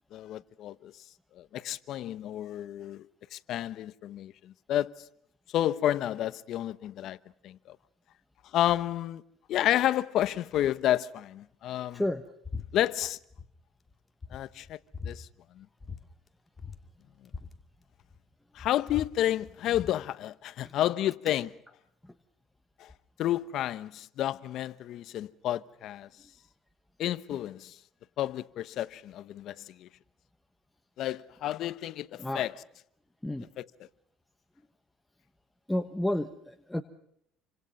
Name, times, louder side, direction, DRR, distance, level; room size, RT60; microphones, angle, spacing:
voice 1, 0.1-0.9 1.4-3.1 3.3-4.9 5.5-7.2 7.4-7.8 8.5-9.2 9.5-12.0 12.7-13.2 14.3-14.8 15.1-15.3 15.6-15.7 18.5-21.5 22.8-22.9 23.2-26.1 27.0-27.7 28.2-29.9 31.0-32.5 33.6-33.7, left 12 dB, 60° left, 1.0 m, -30 dB
voice 2, 11.9-12.2 20.6-20.7 21.3-21.4 22.0-22.1 32.2-32.5 33.2-33.5 35.7-36.8, left 1 dB, 5° left, 1.2 m, -31 dB
Fan popper, 12.4-12.7 12.9-13.5 13.9-14.0 14.2-15.2 15.8-16.0 16.3-16.4 16.6-18.2 18.6-20.0, left 5 dB, 20° left, 2.2 m, -41 dB
29.0 x 26.0 x 5.5 m
cardioid pair, 125°, 0 cm